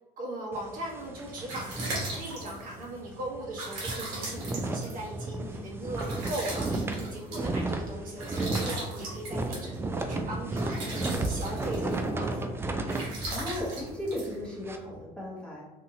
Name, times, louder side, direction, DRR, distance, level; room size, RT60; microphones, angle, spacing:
voice 1, 0.2-12.4, right 1 dB, 50° right, -4 dB, 1.1 m, -38 dB
sound 1, 0.5-2.8 3.1-3.3 3.6-14.8, right 2 dB, 15° right, 0.3 m, -34 dB
sound 2, 1.0-15.0, right 2 dB, 85° right, 1.1 m, -40 dB
voice 2, 13.3-15.6, left 1 dB, 5° left, -5 dB, 0.9 m, -36 dB
2.8 x 2.5 x 2.7 m, 1.2 s
supercardioid pair, 85°, 18 cm